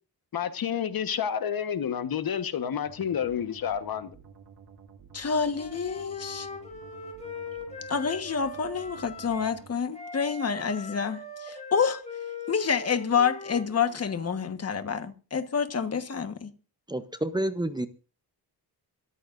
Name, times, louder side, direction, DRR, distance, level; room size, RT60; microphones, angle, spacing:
voice 1, 0.3-4.1, left 8 dB, 65° left, 1.3 m, -29 dB
sound 1, 2.9-9.7, right 6 dB, 75° right, 2.3 m, -52 dB
voice 2, 5.1-6.5 7.9-12.0 12.5-16.5, left 6 dB, 40° left, 1.4 m, -28 dB
Wind instrument woodwind instrument, 5.5-9.6 9.9-14.2, left 3 dB, 15° left, 4.3 m, -41 dB
voice 3, 16.9-17.9, right 1 dB, 10° right, 0.6 m, -29 dB
26.5 x 14.0 x 2.6 m
wide cardioid pair, 135°, 38 cm